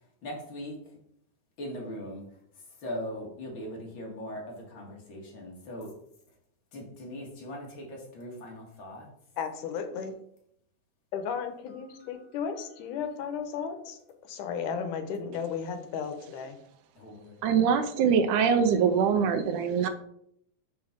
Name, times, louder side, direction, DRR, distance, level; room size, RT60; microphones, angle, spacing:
voice 1, 0.2-0.8 1.6-2.2 2.8-5.9 6.7-9.1 12.0-12.2 17.0-17.4, equal, 45° left, -1 dB, 2.3 m, -40 dB
voice 2, 9.4-10.1 11.1-14.0 14.3-16.6, left 6 dB, 80° left, 7 dB, 2.4 m, -34 dB
voice 3, 17.4-19.9, right 6 dB, 90° right, 8 dB, 2.2 m, -23 dB
5.8 x 5.6 x 5.1 m, 0.71 s
omnidirectional pair, 3.5 m